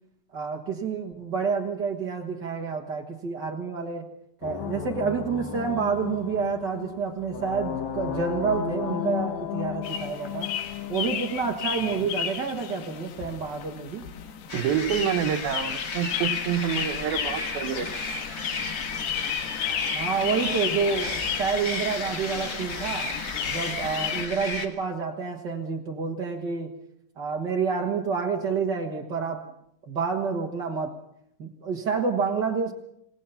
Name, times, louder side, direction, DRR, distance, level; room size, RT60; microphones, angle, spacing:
voice 1, 0.3-4.1 4.4-10.5 10.9-14.1 19.9-23.1 23.5-26.7 27.2-29.5 29.9-30.9 31.4-32.7, right 5 dB, 50° right, 1 dB, 1.2 m, -28 dB
sound 1, 4.4-12.1, left 8 dB, 55° left, 2.2 m, -34 dB
sound 2, 9.8-24.2, left 9 dB, 80° left, 3.6 m, -33 dB
sound 3, 14.5-24.7, left 3 dB, 30° left, 2.0 m, -33 dB
voice 2, 14.5-17.9, right 9 dB, 75° right, 8 dB, 3.0 m, -27 dB
28.0 x 18.0 x 5.8 m, 0.74 s
omnidirectional pair, 4.5 m